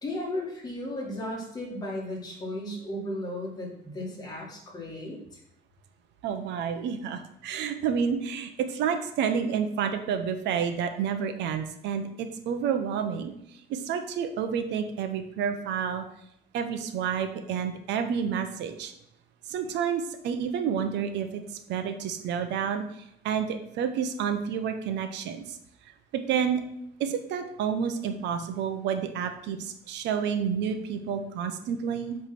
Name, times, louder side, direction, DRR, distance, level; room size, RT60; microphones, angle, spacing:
voice 1, 0.0-5.4, left 1 dB, 20° left, -2 dB, 2.0 m, -35 dB
voice 2, 6.2-13.3 13.7-16.0 16.5-18.9 19.5-25.6 26.1-26.6 27.0-32.2, right 7 dB, 85° right, 7 dB, 0.8 m, -29 dB
8.3 x 3.4 x 6.0 m, 0.76 s
cardioid pair, 165°, 18 cm